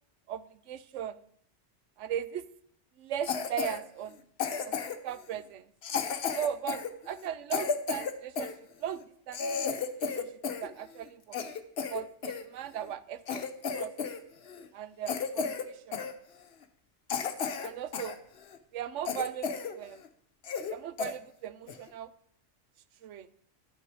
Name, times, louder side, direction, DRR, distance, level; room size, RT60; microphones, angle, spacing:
voice 1, 0.3-1.2 2.0-2.5 3.0-4.2 4.6-4.8 5.0-5.7 6.3-8.5 8.8-9.5 10.0-10.3 10.6-11.4 11.9-13.5 13.7-13.9 14.7-16.0 17.6-18.2 18.7-20.0 20.7-22.1 23.0-23.3, right 10 dB, 80° right, 15 dB, 1.0 m, -38 dB
Cough, 3.2-3.8 4.4-5.1 5.8-8.5 9.0-9.1 9.3-10.7 11.0-12.4 12.9-13.0 13.3-14.2 14.5-14.7 15.1-15.7 15.9-16.1 16.6-16.7 17.1-18.2 18.5-18.6 19.1-19.7 20.0-20.1 20.4-20.7 21.0-21.1 21.7-21.9, left 6 dB, 60° left, 1.0 m, -33 dB
11.5 x 8.7 x 4.8 m, 0.65 s
omnidirectional pair, 1.2 m